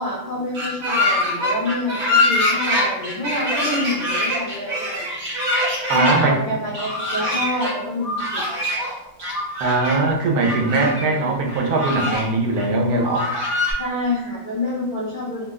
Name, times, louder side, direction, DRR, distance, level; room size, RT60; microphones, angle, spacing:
voice 1, 0.0-5.1 5.8-8.4 10.9-11.4 13.8-15.4, left 1 dB, 60° left, -5 dB, 0.5 m, -27 dB
sound 1, 0.5-6.2 6.7-7.7 8.0-8.9 9.2-9.9 10.4-11.1 11.5-12.2 12.6-12.7 13.0-13.7, left 1 dB, 55° right, 1.0 m, -23 dB
voice 2, 5.9-6.4 9.6-13.3, right 3 dB, 90° right, 1 dB, 1.1 m, -20 dB
2.8 x 2.0 x 3.4 m, 0.93 s
omnidirectional pair, 1.5 m